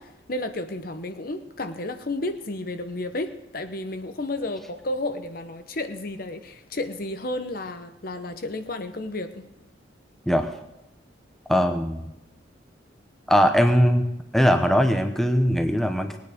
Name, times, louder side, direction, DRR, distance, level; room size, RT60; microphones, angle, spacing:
voice 1, 0.0-9.5, left 2 dB, 50° left, 8 dB, 0.9 m, -32 dB
voice 2, 11.5-12.1 13.3-14.0 14.3-16.1, equal, ahead, 6 dB, 0.9 m, -20 dB
19.5 x 9.4 x 5.1 m, 0.91 s
head